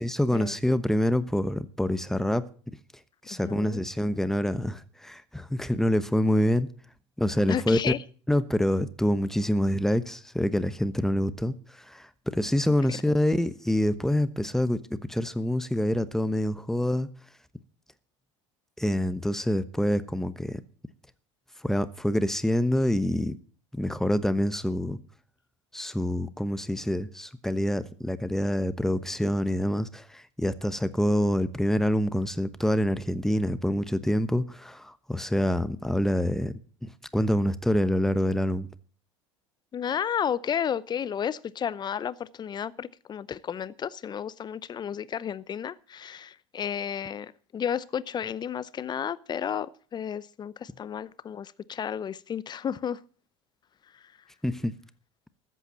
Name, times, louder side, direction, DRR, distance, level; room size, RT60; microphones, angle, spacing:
voice 1, 0.0-2.5 3.3-6.7 7.2-7.8 8.3-11.5 11.9-12.1 12.3-17.1 18.8-20.6 21.6-23.4 23.7-25.0 25.7-38.7 54.4-54.7, equal, 5° left, 1.1 m, -26 dB
voice 2, 3.4-3.8 7.5-8.0 12.9-13.0 39.7-53.0, left 8 dB, 30° left, 0.7 m, -32 dB
14.0 x 8.3 x 7.5 m
figure-of-eight pair, 75°, 16 cm